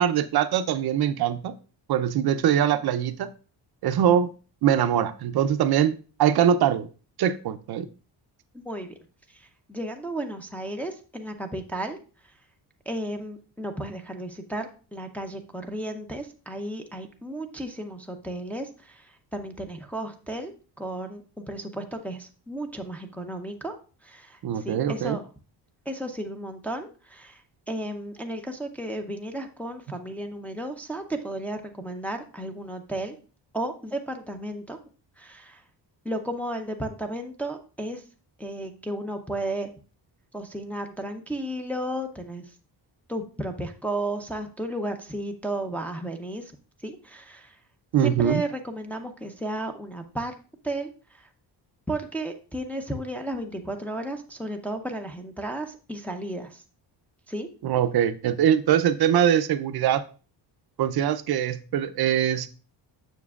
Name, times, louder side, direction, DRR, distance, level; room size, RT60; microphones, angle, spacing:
voice 1, 0.0-1.5 1.9-3.3 3.8-4.3 4.6-5.9 6.2-6.9 7.2-7.9 24.4-25.2 47.9-48.4 57.6-60.0 60.8-62.5, right 9 dB, 60° right, 10 dB, 0.5 m, -22 dB
voice 2, 8.5-9.0 9.3-12.0 12.9-20.5 20.8-23.7 24.0-25.2 25.9-33.2 33.5-34.8 35.2-35.6 36.0-38.0 38.4-39.7 40.3-42.4 43.1-46.5 46.8-47.6 48.0-50.3 50.6-51.3 51.9-56.6 57.3-57.5, right 1 dB, 5° left, 3 dB, 0.5 m, -33 dB
7.2 x 6.0 x 2.3 m, 0.36 s
cardioid pair, 140°, 44 cm